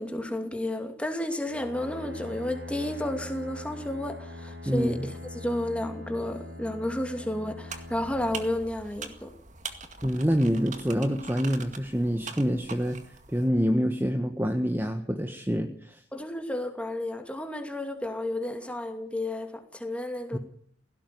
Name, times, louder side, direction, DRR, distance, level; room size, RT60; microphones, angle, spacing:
voice 1, 0.0-9.3 16.1-20.4, left 1 dB, 5° left, 2.6 m, -32 dB
Bowed string instrument, 1.4-9.4, left 2 dB, 65° right, 6.9 m, -42 dB
sound 1, 7.7-13.5, right 5 dB, 40° right, 2.1 m, -43 dB
voice 2, 10.0-16.0 20.3-20.4, equal, 10° right, 1.3 m, -26 dB
17.5 x 17.0 x 9.4 m
head